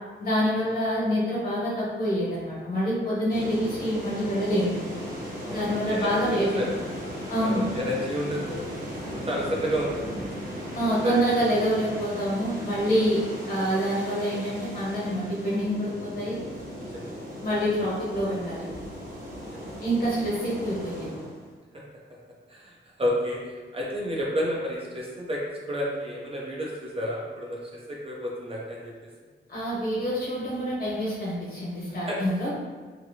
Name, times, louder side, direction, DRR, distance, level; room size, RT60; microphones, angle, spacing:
voice 1, 0.2-4.7 5.5-6.6 7.3-7.6 10.7-16.4 17.4-18.7 19.8-21.1 29.5-32.5, equal, 50° left, -7 dB, 1.1 m, -26 dB
sound 1, 3.3-21.5, equal, 45° right, 1.1 m, -37 dB
voice 2, 5.4-6.7 7.4-8.6 9.1-10.3 11.0-11.2 16.7-17.1 19.4-19.7 21.7-21.8 22.5-29.1 31.9-32.2, equal, 30° right, -3 dB, 0.5 m, -31 dB
2.8 x 2.5 x 2.7 m, 1.5 s
wide cardioid pair, 125°, 20 cm